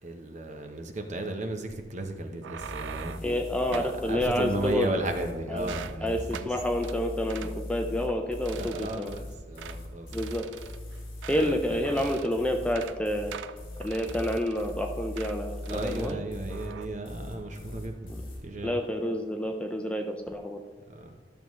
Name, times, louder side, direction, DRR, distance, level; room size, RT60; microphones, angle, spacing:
voice 1, 0.0-3.2 3.7-6.6 7.4-7.5 8.5-10.3 11.3-12.1 15.7-18.8 20.9-21.1, right 2 dB, 40° right, 4 dB, 0.9 m, -35 dB
sound 1, 2.2-3.3 3.7-4.0 4.6-5.3 5.6-6.0 6.3-6.5 6.8-7.0 7.3-7.5 8.0-8.2 8.5-9.2 9.6-9.8 10.1-11.6 11.9-12.3 12.6-13.0 13.3-14.7 15.2-15.4 15.7-16.2 16.5-16.9, right 8 dB, 85° right, 0.4 m, -43 dB
sound 2, 2.6-18.4, left 1 dB, 50° left, 2.0 m, -40 dB
voice 2, 3.2-4.9 5.5-5.7 6.0-9.1 10.1-10.5 11.3-13.4 13.8-16.2 18.6-20.6, left 1 dB, 5° left, 3 dB, 0.4 m, -29 dB
13.0 x 6.9 x 3.1 m, 1.4 s
head